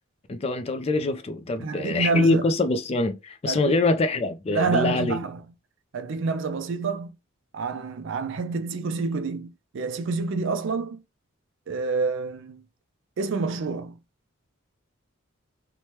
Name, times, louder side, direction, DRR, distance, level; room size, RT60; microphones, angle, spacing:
voice 1, 0.3-5.2, left 2 dB, 30° left, 0.3 m, -24 dB
voice 2, 1.6-2.4 3.4-3.9 4.5-5.4 5.9-7.2 7.5-11.0 11.7-12.6 13.2-14.0, right 4 dB, 60° right, 0.4 m, -28 dB
3.1 x 2.1 x 2.9 m
head